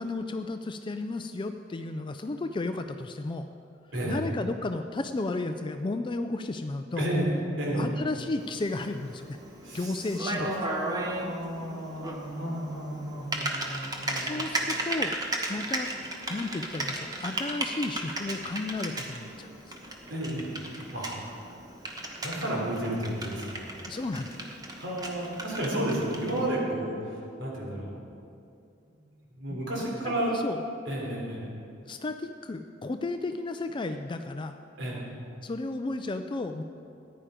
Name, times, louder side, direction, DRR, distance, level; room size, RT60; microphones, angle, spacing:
voice 1, 0.0-3.5 4.0-7.1 7.7-9.4 9.7-10.5 14.2-15.9 16.3-19.8 23.9-24.5 29.5-30.6 31.9-34.5 35.4-36.6, left 2 dB, 25° left, 7 dB, 0.4 m, -33 dB
voice 2, 3.9-4.2 7.0-8.1 9.6-9.9 10.4-14.3 20.1-20.5 20.9-21.2 22.2-23.6 24.8-27.9 29.3-30.3 30.9-31.5 34.8-35.0, right 1 dB, 70° right, -3 dB, 3.5 m, -32 dB
Typing, 8.4-26.5, right 1 dB, 20° right, 1.2 m, -36 dB
14.5 x 10.0 x 5.0 m, 2.5 s
head